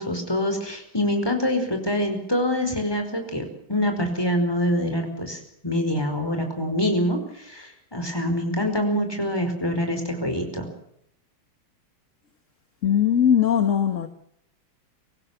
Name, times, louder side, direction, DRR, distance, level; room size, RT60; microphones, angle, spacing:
voice 1, 0.0-10.7, left 1 dB, 10° left, 5.0 m, -25 dB
voice 2, 12.8-14.1, left 9 dB, 40° left, 1.5 m, -20 dB
25.0 x 15.5 x 7.9 m
omnidirectional pair, 2.2 m